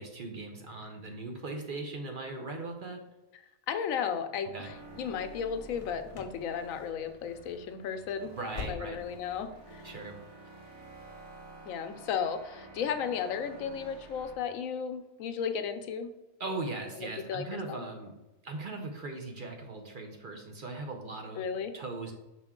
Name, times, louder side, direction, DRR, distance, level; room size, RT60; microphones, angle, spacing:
voice 1, 0.0-3.0 4.5-4.7 8.3-9.0 9.8-10.2 10.6-10.7 16.4-18.1 18.4-21.4 21.7-22.1, right 3 dB, 50° right, 3 dB, 0.8 m, -39 dB
voice 2, 3.7-8.4 8.7-9.9 11.6-16.1 17.0-17.8 21.3-21.7, left 7 dB, 85° left, 9 dB, 1.0 m, -34 dB
sound 1, 4.6-14.4, right 2 dB, 85° right, 2.0 m, -51 dB
sound 2, 5.7-6.4 6.7-7.1 7.4-7.6 8.0-9.3 9.6-9.7 10.2-10.3, left 4 dB, 40° left, 0.5 m, -44 dB
5.9 x 4.4 x 3.6 m, 1.0 s
omnidirectional pair, 1.4 m